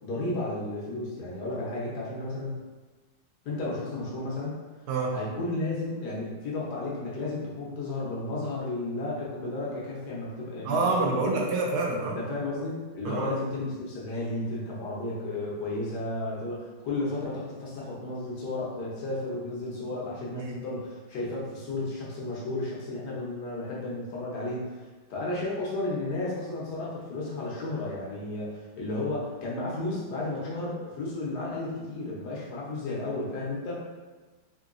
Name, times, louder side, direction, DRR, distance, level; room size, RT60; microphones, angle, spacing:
voice 1, 0.0-2.6 3.4-4.6 5.1-11.4 12.0-24.8 25.1-33.8, left 2 dB, 65° left, -5 dB, 1.4 m, -33 dB
voice 2, 10.6-12.2 13.0-13.4 20.3-20.6, right 3 dB, 70° right, 0 dB, 1.0 m, -27 dB
3.8 x 2.8 x 2.5 m, 1.3 s
omnidirectional pair, 2.0 m